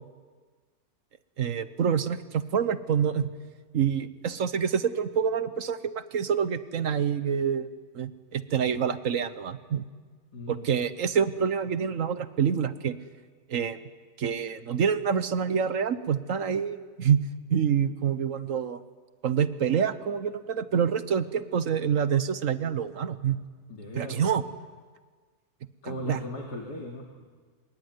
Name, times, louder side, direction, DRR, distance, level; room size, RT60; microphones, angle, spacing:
voice 1, 1.4-3.3 3.7-7.7 7.9-9.8 10.5-13.0 13.5-13.8 14.2-17.2 17.5-18.8 19.2-23.4 24.0-24.4 25.8-26.2, right 7 dB, 55° right, 13 dB, 1.2 m, -27 dB
voice 2, 10.3-10.7 23.7-24.3 25.8-27.0, left 1 dB, 70° left, -1 dB, 3.2 m, -37 dB
25.0 x 21.5 x 9.5 m, 1.5 s
omnidirectional pair, 1.8 m